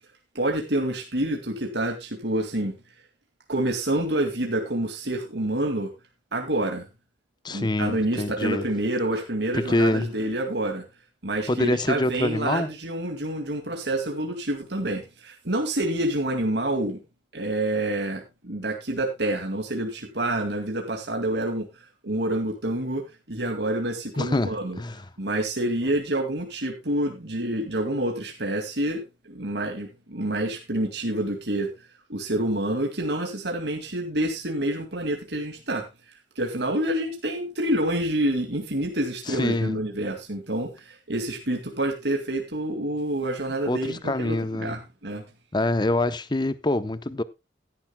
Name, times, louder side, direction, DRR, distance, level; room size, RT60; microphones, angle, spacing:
voice 1, 0.3-2.7 3.5-5.9 6.3-6.9 7.5-10.8 11.2-17.0 17.3-21.7 22.0-24.8 25.2-31.7 32.1-35.8 36.4-45.2, right 1 dB, 65° right, 2.2 m, -27 dB
voice 2, 7.4-8.7 9.5-10.1 11.5-12.7 24.2-25.1 39.3-39.8 43.7-44.8 45.5-47.2, left 1 dB, 25° left, 0.7 m, -25 dB
16.0 x 10.5 x 2.2 m
head